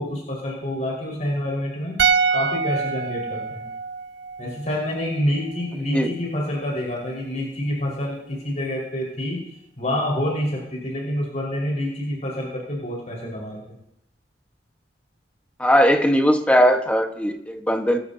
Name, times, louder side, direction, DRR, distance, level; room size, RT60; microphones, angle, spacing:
voice 1, 0.0-2.0 2.3-3.6 4.4-13.6, left 1 dB, 40° left, -3 dB, 4.9 m, -27 dB
sound 1, 2.0-5.2 5.5-5.6, right 6 dB, 75° right, 0.5 m, -25 dB
voice 2, 15.6-18.0, equal, 10° left, 3 dB, 1.3 m, -19 dB
25.5 x 13.0 x 2.8 m, 0.77 s
head